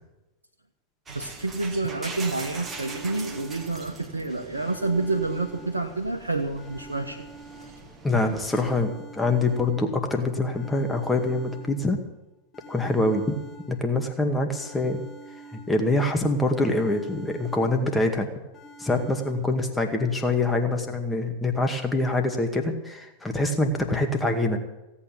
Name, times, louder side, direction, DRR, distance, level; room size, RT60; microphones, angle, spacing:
sound 1, 1.1-8.8, right 4 dB, 20° right, 1.8 m, -42 dB
voice 1, 1.1-7.3, right 3 dB, 75° right, 1 dB, 1.3 m, -28 dB
sound 2, 2.6-4.1 4.6-6.1 6.6-8.1 8.6-10.1 10.5-12.1 12.5-14.1 14.5-16.1 16.5-18.1 18.5-19.3, right 3 dB, 25° left, 3.1 m, -47 dB
voice 2, 8.0-12.0 12.7-13.4 13.7-15.0 15.5-18.3 18.8-24.6, left 2 dB, 10° left, 4 dB, 2.1 m, -25 dB
17.0 x 8.7 x 8.5 m, 1.0 s
figure-of-eight pair, 95°, 0 cm